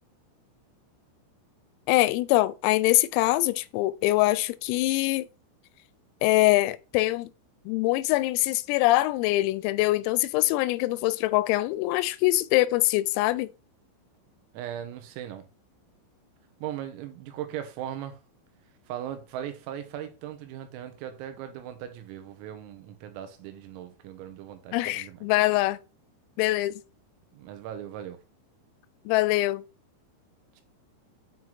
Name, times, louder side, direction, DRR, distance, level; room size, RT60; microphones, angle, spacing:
voice 1, 1.9-5.3 6.2-7.3 7.7-13.5 24.7-25.8 26.4-26.7 29.1-29.6, left 18 dB, 90° left, 3.3 m, -23 dB
voice 2, 14.5-15.5 16.6-18.2 18.9-25.3 27.3-28.2, right 10 dB, 85° right, 3.9 m, -38 dB
9.4 x 4.6 x 4.0 m
omnidirectional pair, 6.0 m